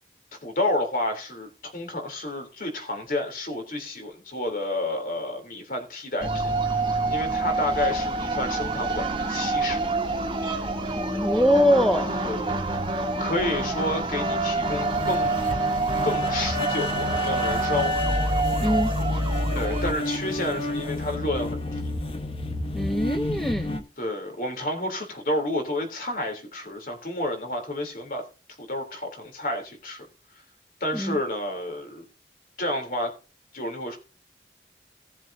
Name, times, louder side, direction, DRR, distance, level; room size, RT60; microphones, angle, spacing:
voice 1, 0.4-6.8 7.1-9.8 12.2-12.6 13.2-15.3 16.0-17.9 19.5-21.9 24.0-28.2 28.7-30.0 30.8-32.1 32.6-33.1 33.5-34.0, left 1 dB, 50° left, 3.5 m, -30 dB
sound 1, 6.2-19.9, right 2 dB, 25° right, 1.6 m, -27 dB
voice 2, 11.0-12.2 18.6-18.9 22.7-23.8 30.9-31.2, equal, ahead, 0.8 m, -23 dB
sound 2, 14.6-23.8, left 2 dB, 30° left, 1.3 m, -30 dB
18.0 x 7.5 x 2.8 m
head